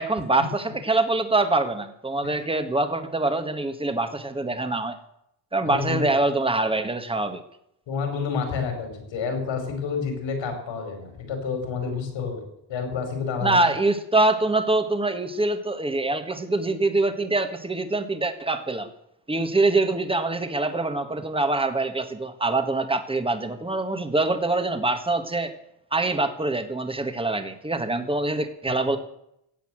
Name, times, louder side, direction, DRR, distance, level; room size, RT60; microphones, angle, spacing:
voice 1, 0.0-5.0 5.5-7.4 13.4-18.9 19.3-25.6 25.9-29.0, right 2 dB, 10° right, 9 dB, 1.6 m, -24 dB
voice 2, 5.6-6.1 7.9-12.4 12.7-13.6 28.9-29.0, left 5 dB, 80° left, 5 dB, 5.1 m, -29 dB
16.0 x 8.3 x 7.7 m, 0.77 s
cardioid pair, 105°, 45 cm